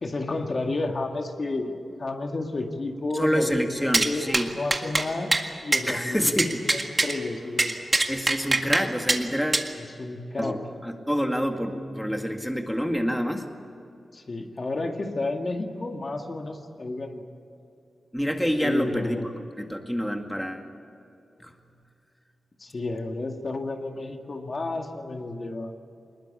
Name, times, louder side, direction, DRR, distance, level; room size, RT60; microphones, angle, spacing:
voice 1, 0.0-6.2 6.7-7.8 10.0-10.6 14.1-17.2 18.6-19.3 22.6-25.7, left 2 dB, 45° left, 4 dB, 2.0 m, -31 dB
voice 2, 3.1-4.5 5.9-6.8 8.1-9.7 10.4-13.5 18.1-19.3 19.6-20.7 21.4-21.5, equal, ahead, 4 dB, 2.0 m, -27 dB
sound 1, 3.9-4.1 4.3-4.5 4.7-5.1 5.3-5.5 5.7-5.8 6.4-7.1 7.6-8.8 9.1-9.2 9.5-9.7, right 2 dB, 30° right, 1.9 m, -22 dB
22.0 x 20.5 x 8.5 m, 2.6 s
cardioid pair, 70°, 0 cm